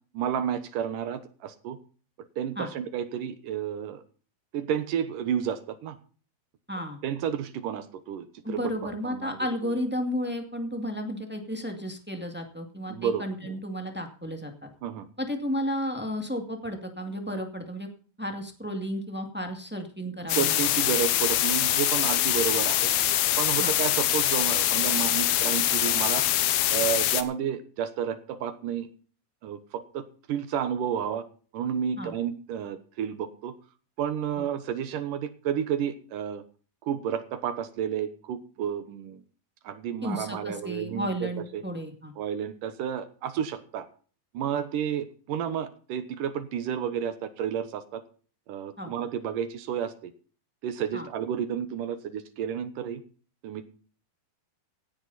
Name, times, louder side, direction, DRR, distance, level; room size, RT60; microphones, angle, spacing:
voice 1, 0.1-1.8 2.4-4.0 4.5-6.0 7.0-9.7 12.9-13.6 14.8-15.1 20.3-22.9 23.4-26.3 26.7-28.9 29.4-31.2 31.5-33.5 34.0-36.4 36.8-39.2 39.6-41.6 42.2-43.9 44.3-48.0 48.5-50.1 50.6-53.0 53.4-53.6, right 8 dB, 70° right, 11 dB, 2.6 m, -31 dB
voice 2, 6.7-7.0 8.4-14.7 15.2-17.9 18.2-20.6 20.9-21.0 23.6-23.7 32.0-32.1 34.4-34.5 40.0-42.1 48.8-48.9 50.9-51.1, equal, 5° right, 4 dB, 0.8 m, -33 dB
sound 1, 20.3-27.2, left 13 dB, 85° left, 2.9 m, -24 dB
17.0 x 11.5 x 4.1 m, 0.41 s
omnidirectional pair, 4.3 m